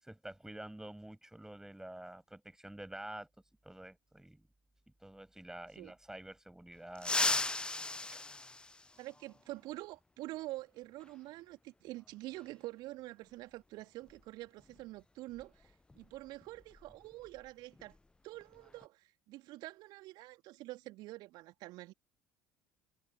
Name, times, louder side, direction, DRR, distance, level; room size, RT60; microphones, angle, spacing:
voice 1, 0.0-3.3 3.6-4.5 5.0-7.4 8.1-8.4, right 1 dB, 5° right, 7.1 m, -49 dB
sound 1, 7.0-9.4 11.0-11.1 12.3-12.4 14.1-14.2 14.6-14.8 15.3-17.5 17.7-18.0 18.4-18.8, left 2 dB, 10° left, 0.5 m, -37 dB
voice 2, 9.0-18.0 18.2-21.9, right 18 dB, 55° right, 3.1 m, -47 dB
figure-of-eight pair, 60°, 9 cm